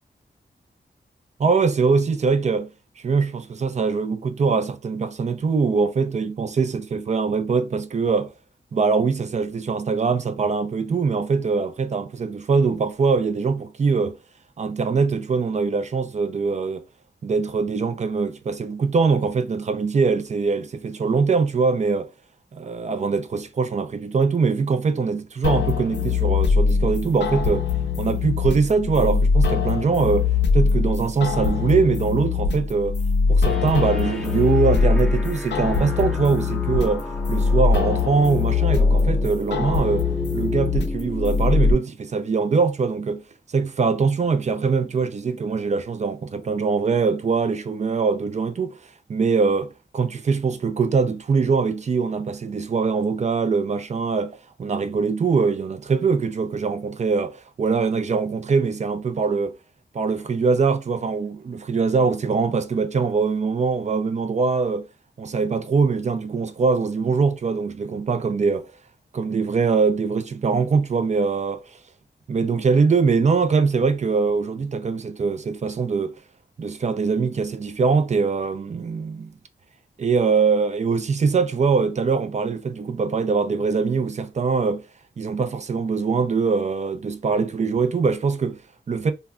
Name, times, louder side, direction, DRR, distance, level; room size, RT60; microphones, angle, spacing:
voice 1, 1.4-2.7 3.0-8.3 8.7-14.2 14.6-16.8 17.2-22.1 22.5-27.7 28.0-33.0 33.3-40.1 40.3-43.2 43.5-48.8 49.1-59.6 59.9-64.8 65.2-68.6 69.1-71.6 72.3-76.1 76.6-79.3 80.0-84.8 85.2-88.6 88.9-89.1, right 5 dB, 40° right, 0.4 m, -22 dB
sound 1, 25.4-41.7, left 5 dB, 80° left, 0.4 m, -22 dB
sound 2, 33.5-41.7, equal, 5° left, 0.6 m, -33 dB
2.2 x 2.1 x 3.5 m
wide cardioid pair, 120°, 18 cm